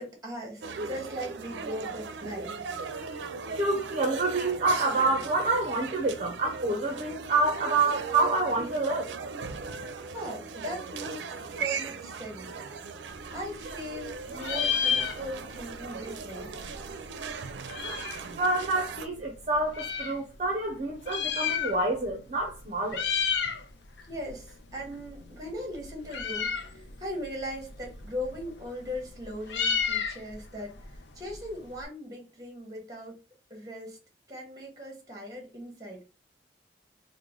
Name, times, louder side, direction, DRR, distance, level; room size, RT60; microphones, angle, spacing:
voice 1, 0.0-2.6 10.1-12.5 13.3-16.5 24.1-30.7 31.1-33.2 33.5-34.0 34.3-36.0, equal, 20° right, 1.1 m, -39 dB
sound 1, 0.6-19.1, right 5 dB, 90° right, 0.4 m, -38 dB
voice 2, 3.5-9.1 18.4-23.1, right 2 dB, 40° right, 0.6 m, -27 dB
Meow, 13.1-14.1 14.3-15.6 15.9-16.0 16.2-18.3 19.0-20.2 20.9-22.1 22.4-22.6 22.9-23.6 24.0-31.8, left 7 dB, 80° left, 0.5 m, -32 dB
3.1 x 2.1 x 3.7 m
head